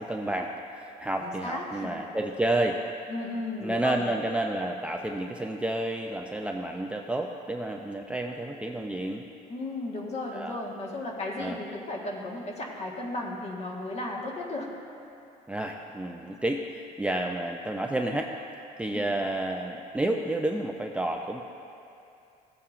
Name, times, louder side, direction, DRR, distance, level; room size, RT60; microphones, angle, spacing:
voice 1, 0.0-2.8 3.6-9.2 10.3-10.6 11.4-11.6 15.5-18.3 18.8-21.4, right 1 dB, 5° right, 1 dB, 0.4 m, -30 dB
voice 2, 1.2-1.9 3.1-4.1 9.5-14.7 18.9-19.1, left 2 dB, 40° left, -1 dB, 1.5 m, -35 dB
15.0 x 8.4 x 2.5 m, 2.6 s
cardioid pair, 110°, 17 cm